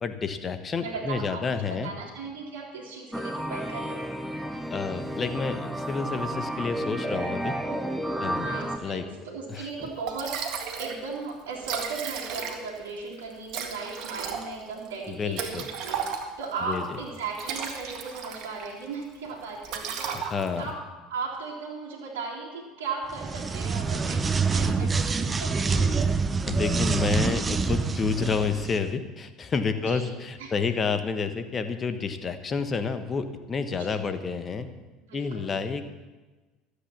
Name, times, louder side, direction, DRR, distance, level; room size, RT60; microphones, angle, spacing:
voice 1, 0.0-1.9 4.7-7.6 8.2-8.5 8.8-9.0 9.5-9.9 15.1-15.7 16.6-17.0 20.1-20.6 24.8-24.9 26.5-34.7 35.1-35.8, left 5 dB, 35° left, 9 dB, 1.2 m, -29 dB
voice 2, 0.8-4.0 7.7-7.8 8.1-10.4 10.8-20.3 20.5-20.8 21.1-26.1 29.9-30.5 33.7-34.0 35.1-35.5, right 4 dB, 80° right, -5 dB, 2.2 m, -37 dB
sound 1, 3.1-8.8, right 1 dB, 5° right, 1.4 m, -32 dB
Liquid, 9.7-9.8 10.1-11.0 11.3-11.4 11.6-12.8 13.5-16.5 17.2-18.7 19.0-19.3 19.6-20.7, right 7 dB, 60° right, 1.8 m, -34 dB
sound 2, 23.1-28.8, right 4 dB, 25° right, 0.9 m, -26 dB
13.0 x 8.4 x 7.3 m, 1.2 s
hypercardioid pair, 75°, 0 cm